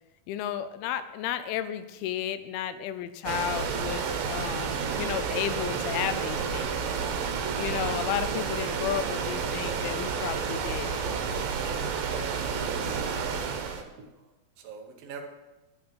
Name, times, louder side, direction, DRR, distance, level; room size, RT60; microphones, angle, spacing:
voice 1, 0.3-6.8 7.6-11.0, left 11 dB, 85° left, 12 dB, 2.5 m, -33 dB
sound 1, 3.3-13.8, right 6 dB, 75° right, 2.6 m, -30 dB
voice 2, 12.0-13.3 13.6-14.1 14.6-15.2, right 6 dB, 90° right, 2 dB, 1.3 m, -44 dB
9.3 x 5.7 x 7.0 m, 1.0 s
omnidirectional pair, 4.4 m